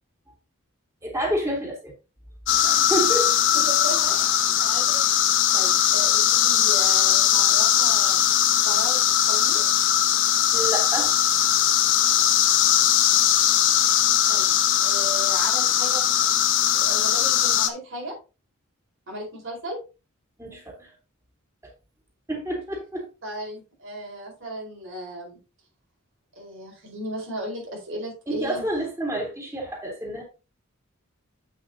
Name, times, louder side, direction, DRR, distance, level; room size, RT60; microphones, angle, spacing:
voice 1, 1.0-1.9 2.6-3.3 10.5-11.1 20.4-20.9 22.3-23.1 28.3-30.2, right 1 dB, 15° right, 3.2 m, -29 dB
sound 1, 2.5-17.7, left 10 dB, 60° left, 1.0 m, -20 dB
voice 2, 3.7-5.0 5.5-8.2 8.6-9.0 9.3-9.6 14.3-14.5 14.8-16.3 16.7-18.2 19.1-19.8 23.2-25.4 26.3-28.6, right 1 dB, 60° right, 4.5 m, -35 dB
8.5 x 8.4 x 2.8 m
head